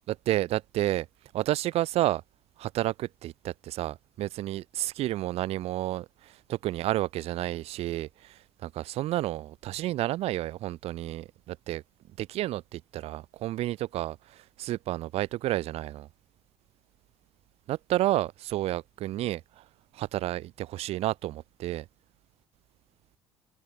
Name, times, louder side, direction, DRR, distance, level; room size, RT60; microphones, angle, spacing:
voice 1, 0.3-1.1 1.3-2.2 2.6-11.8 12.2-16.1 17.7-19.6 19.9-21.9, right 15 dB, 60° right, 2.1 m, -31 dB
hypercardioid pair, 55°, 12 cm